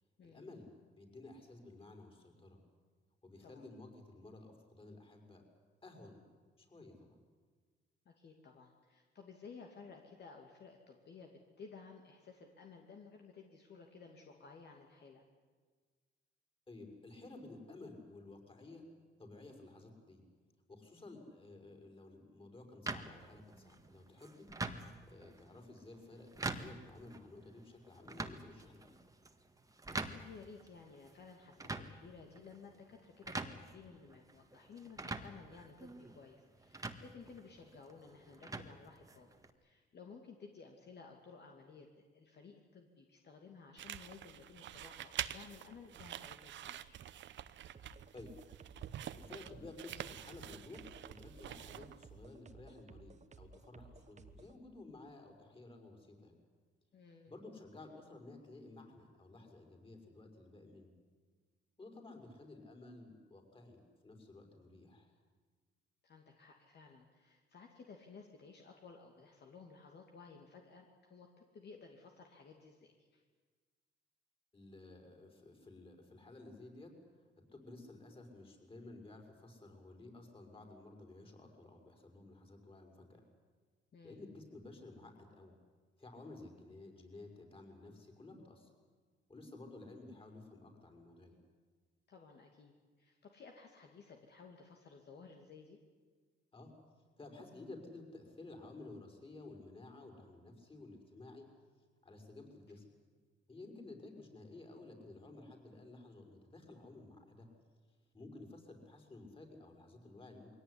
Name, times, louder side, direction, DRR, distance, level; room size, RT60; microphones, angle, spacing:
voice 1, 0.2-2.6 3.2-5.4 5.8-6.2 6.6-7.2 16.7-18.8 19.2-20.2 20.7-24.5 25.1-29.0 48.1-48.3 49.2-56.4 57.3-60.9 61.8-65.1 74.5-83.2 84.0-85.5 86.0-88.7 89.3-91.4 96.5-96.7 97.2-101.5 102.0-102.8 103.5-107.5 108.1-110.5, left 2 dB, 25° left, 4 dB, 5.7 m, -54 dB
voice 2, 8.1-15.2 29.9-39.3 39.6-47.0 56.9-57.3 66.0-73.2 83.9-84.2 92.1-95.8, left 5 dB, 55° left, 2 dB, 2.6 m, -56 dB
sound 1, 22.9-39.5, right 2 dB, 15° right, 1.7 m, -46 dB
sound 2, 43.8-52.1, right 11 dB, 70° right, 0.9 m, -47 dB
sound 3, 47.7-54.6, right 4 dB, 35° right, 1.5 m, -57 dB
22.0 x 17.5 x 9.9 m, 1.5 s
cardioid pair, 90°, 20 cm